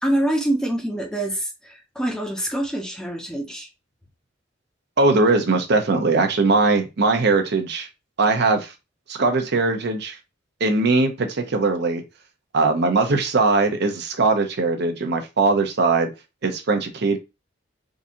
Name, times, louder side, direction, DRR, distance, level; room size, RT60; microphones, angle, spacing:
voice 1, 0.0-3.7, right 1 dB, 5° left, 0.7 m, -25 dB
voice 2, 5.0-7.9 8.2-8.7 9.1-10.2 10.6-12.0 12.5-16.1 16.4-17.2, right 3 dB, 55° right, 0.6 m, -20 dB
3.7 x 2.7 x 2.6 m
head